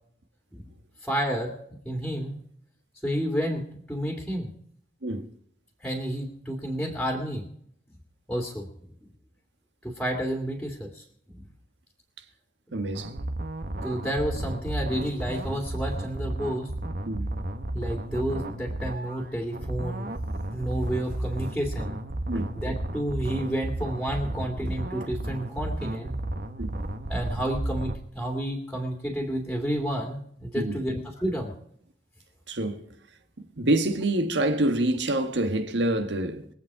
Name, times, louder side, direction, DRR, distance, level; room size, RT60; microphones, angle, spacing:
voice 1, 1.0-1.5 1.8-2.3 3.0-4.5 5.8-7.5 8.3-8.7 9.8-11.4 13.8-16.7 17.7-20.1 20.5-22.0 22.3-26.2 27.1-31.5, equal, 5° left, 2.3 m, -30 dB
voice 2, 12.7-13.2 17.0-17.3 22.3-22.5 26.6-26.7 30.5-30.8 32.5-32.8 33.6-36.5, right 1 dB, 75° right, 1.6 m, -26 dB
sound 1, 12.9-28.0, right 1 dB, 55° right, 1.4 m, -33 dB
22.5 x 8.4 x 4.8 m
head